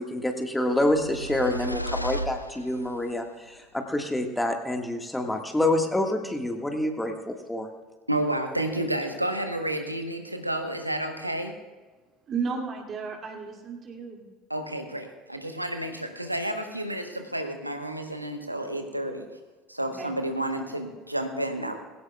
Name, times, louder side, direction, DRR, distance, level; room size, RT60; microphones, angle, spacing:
voice 1, 0.0-7.7, left 1 dB, 10° left, 4 dB, 1.7 m, -27 dB
sound 1, 0.7-3.1, right 1 dB, 90° left, 0.5 m, -35 dB
voice 2, 8.1-11.5 14.5-19.3 19.7-21.8, right 1 dB, 90° right, 6 dB, 1.1 m, -30 dB
voice 3, 12.3-14.2 20.0-20.1, right 5 dB, 35° right, 0 dB, 2.5 m, -33 dB
20.5 x 17.0 x 2.4 m, 1.3 s
figure-of-eight pair, 65°, 0 cm